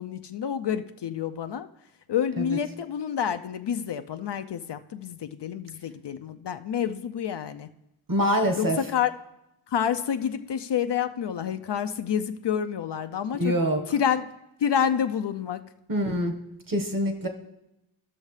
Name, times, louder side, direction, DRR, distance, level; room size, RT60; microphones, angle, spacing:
voice 1, 0.0-1.7 2.1-7.7 8.6-9.1 9.7-13.5 13.9-14.3 14.6-15.7, left 8 dB, 60° left, 9 dB, 0.5 m, -28 dB
voice 2, 8.1-8.8 13.4-13.8 15.9-16.3 16.7-17.3, equal, 40° right, 4 dB, 1.4 m, -25 dB
14.5 x 6.4 x 3.2 m, 0.90 s
cardioid pair, 70°, 49 cm